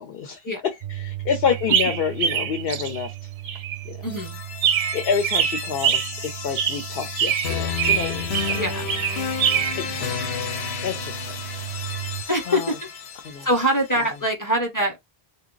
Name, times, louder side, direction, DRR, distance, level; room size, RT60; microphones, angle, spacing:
voice 1, 0.0-3.3 3.8-4.0 4.7-8.6 9.8-11.4 12.5-12.7 13.2-13.5, left 6 dB, 70° left, 0.9 m, -29 dB
sound 1, 0.8-12.2, right 15 dB, 55° right, 0.6 m, -37 dB
sound 2, 1.5-3.1 3.4-3.8 4.6-9.8, right 8 dB, 90° right, 0.9 m, -24 dB
sound 3, 4.0-14.0, left 6 dB, 90° left, 1.1 m, -32 dB
voice 2, 4.0-4.4 8.5-8.9 12.3-12.6 13.4-15.0, equal, 20° left, 0.7 m, -23 dB
2.9 x 2.2 x 3.8 m
omnidirectional pair, 1.0 m